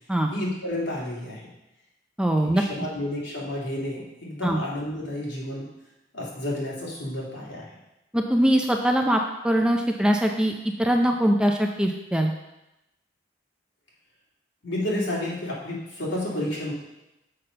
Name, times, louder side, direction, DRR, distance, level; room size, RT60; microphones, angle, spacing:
voice 1, 0.3-1.5 2.4-5.7 6.1-7.7 14.6-16.7, left 1 dB, 75° left, -5 dB, 2.6 m, -31 dB
voice 2, 2.2-2.6 4.4-4.6 8.1-10.5 10.8-12.3, equal, 5° right, 3 dB, 0.4 m, -22 dB
6.6 x 5.9 x 5.6 m, 0.93 s
head